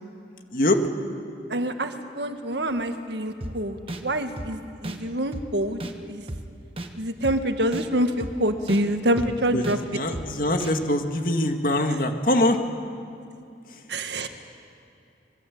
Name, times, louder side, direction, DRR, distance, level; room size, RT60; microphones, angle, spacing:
voice 1, 1.5-5.8 6.1-6.2 7.0-9.8 13.9-14.3, right 1 dB, 75° right, 7 dB, 1.7 m, -26 dB
sound 1, 3.4-3.5 3.9-4.0 4.4-4.5 4.8-5.0 5.3-5.5 5.8-5.9 6.3-6.4 6.8-6.9 7.2-7.4 7.7-7.9 8.2-8.3 8.7-8.8 9.2-9.3 9.6-9.8 10.1-10.3 10.6-10.7, right 1 dB, 30° right, 1.3 m, -33 dB
voice 2, 9.9-12.6 13.7-13.8, left 1 dB, 50° left, 5 dB, 2.0 m, -23 dB
26.0 x 21.5 x 8.6 m, 2.6 s
head